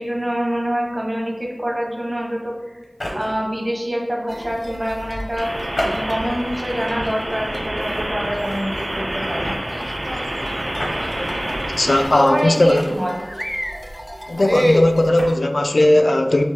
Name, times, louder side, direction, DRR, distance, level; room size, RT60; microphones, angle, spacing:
voice 1, 0.0-2.8 3.1-9.6 12.2-13.1, equal, 35° right, -1 dB, 1.1 m, -25 dB
sound 1, 2.8-3.5 5.7-6.5 7.1-7.3 8.5-8.8 10.8-11.0 12.7-13.3 14.9-15.4, left 1 dB, 85° left, 0.9 m, -29 dB
sound 2, 4.3-15.1, equal, ahead, 0.4 m, -30 dB
sound 3, 5.4-12.1, right 1 dB, 75° right, 0.9 m, -27 dB
voice 2, 11.8-12.9 14.3-16.4, left 1 dB, 65° left, 6 dB, 0.3 m, -17 dB
6.2 x 2.2 x 3.4 m, 1.3 s
wide cardioid pair, 55°, 0 cm